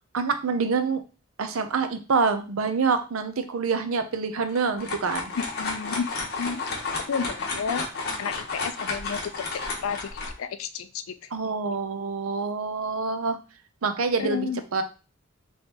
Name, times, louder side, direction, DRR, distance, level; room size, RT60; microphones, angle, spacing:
voice 1, 0.1-1.0 1.4-5.3 11.3-13.4 13.8-14.8, right 5 dB, 80° right, 8 dB, 0.6 m, -26 dB
sound 1, 4.5-10.3, left 3 dB, 50° left, 1.2 m, -32 dB
voice 2, 5.4-6.6 7.1-7.8 8.2-10.1 10.4-11.3 14.2-14.6, left 6 dB, 75° left, 12 dB, 0.4 m, -31 dB
4.4 x 3.2 x 2.9 m, 0.33 s
head